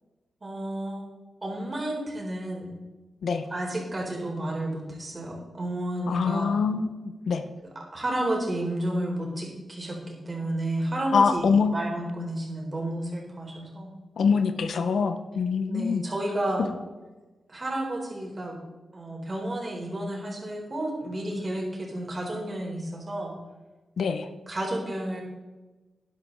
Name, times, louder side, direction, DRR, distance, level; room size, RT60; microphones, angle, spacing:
voice 1, 0.4-1.0 1.4-2.7 3.5-6.5 7.9-11.4 11.7-13.9 15.7-16.7 17.5-18.6 18.9-23.3 24.5-25.2, right 1 dB, 35° right, -1 dB, 4.0 m, -31 dB
voice 2, 6.1-7.4 11.1-11.7 14.2-16.0 24.0-24.3, left 5 dB, 80° left, 9 dB, 0.9 m, -24 dB
11.5 x 10.5 x 4.0 m, 1.2 s
cardioid pair, 75°, 0 cm